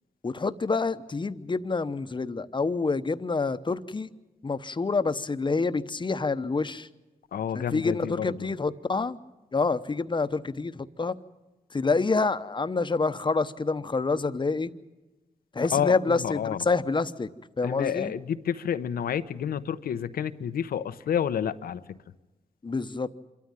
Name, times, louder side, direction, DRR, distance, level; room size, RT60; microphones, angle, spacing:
voice 1, 0.2-4.1 4.4-6.9 7.5-9.2 9.5-11.2 11.7-14.7 15.5-17.3 17.6-18.1 22.6-23.1, left 4 dB, 35° left, 11 dB, 0.9 m, -27 dB
voice 2, 7.3-8.5 15.7-16.6 17.6-22.0, left 8 dB, 90° left, 13 dB, 0.8 m, -30 dB
26.5 x 13.0 x 9.0 m, 1.1 s
cardioid pair, 70°, 15 cm